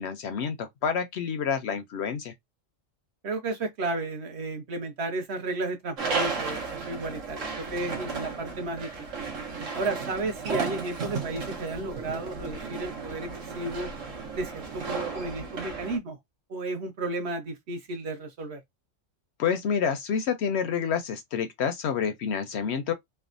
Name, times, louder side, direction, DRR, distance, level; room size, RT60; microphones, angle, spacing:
voice 1, 0.0-2.3 19.4-22.9, left 7 dB, 65° left, 0.7 m, -28 dB
voice 2, 3.2-9.1 9.7-13.3 13.5-13.9 14.3-16.2 16.5-18.6, right 2 dB, 60° right, 1.1 m, -33 dB
sound 1, 6.0-16.0, right 4 dB, 80° right, 1.3 m, -34 dB
3.4 x 2.1 x 2.5 m
omnidirectional pair, 1.3 m